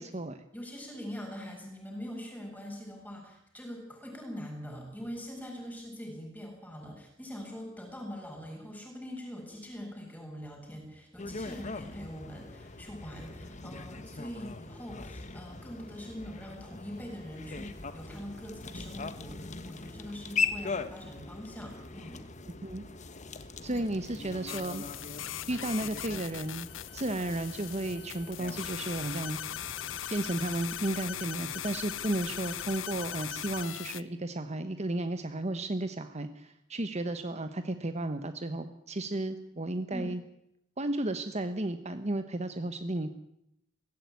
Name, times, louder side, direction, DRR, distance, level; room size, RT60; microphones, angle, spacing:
voice 1, 0.0-0.4 22.5-22.8 23.6-24.8 25.5-26.7 26.9-29.4 30.1-40.2 40.8-43.1, right 1 dB, 35° right, 9 dB, 1.2 m, -33 dB
voice 2, 0.5-22.2 23.6-23.9 39.9-40.1, equal, 10° left, 1 dB, 7.9 m, -43 dB
sound 1, 11.2-30.0, left 4 dB, 40° left, 1.4 m, -40 dB
sound 2, 24.5-34.0, left 11 dB, 85° left, 0.8 m, -39 dB
18.0 x 16.5 x 9.6 m, 0.78 s
head